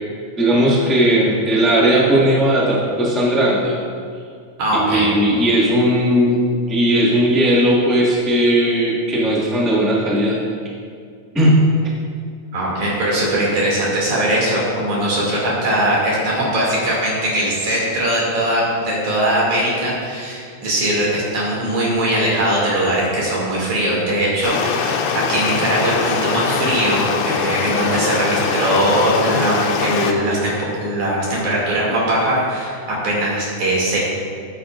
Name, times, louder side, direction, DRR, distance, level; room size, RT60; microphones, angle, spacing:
voice 1, 0.4-3.7 4.7-6.4 6.7-10.4 11.3-11.7, right 1 dB, ahead, -6 dB, 0.3 m, -16 dB
voice 2, 4.6-5.1 12.5-34.0, right 1 dB, 70° right, -5 dB, 4.0 m, -20 dB
Stream, 24.4-30.1, left 6 dB, 85° left, 2.2 m, -22 dB
14.0 x 8.5 x 2.6 m, 2.2 s
omnidirectional pair, 3.5 m